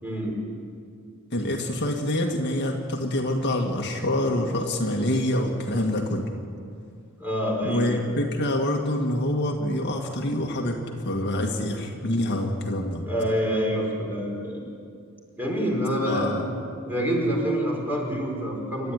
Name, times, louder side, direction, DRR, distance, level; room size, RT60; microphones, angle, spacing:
voice 1, 0.0-0.4 7.2-8.0 13.1-14.6 15.4-16.3 16.9-18.9, equal, 10° right, -2 dB, 4.7 m, -26 dB
voice 2, 1.3-6.3 7.6-13.0 16.0-16.5, left 1 dB, 50° left, 1 dB, 2.0 m, -26 dB
28.0 x 12.5 x 9.8 m, 2.3 s
head